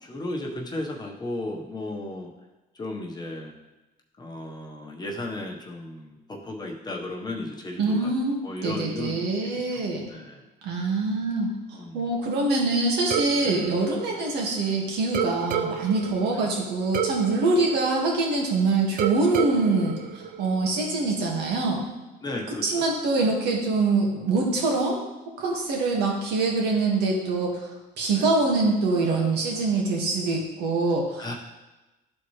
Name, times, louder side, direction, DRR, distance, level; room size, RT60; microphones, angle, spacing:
voice 1, 0.0-2.3 2.8-3.5 4.2-8.1 8.4-10.4 11.7-12.1 13.4-13.6 15.5-15.7 16.3-16.5 22.2-22.9 23.2-23.3 28.1-28.2 31.2-31.3, left 1 dB, 25° left, -1 dB, 1.2 m, -35 dB
voice 2, 7.8-10.1 10.6-21.8 22.6-25.0 25.4-31.3, right 3 dB, 80° right, -1 dB, 1.9 m, -24 dB
sound 1, 13.1-14.7 15.1-18.5 19.0-20.9, right 7 dB, 60° right, 0.6 m, -31 dB
12.0 x 4.3 x 3.2 m, 1.1 s
cardioid pair, 110°, 17 cm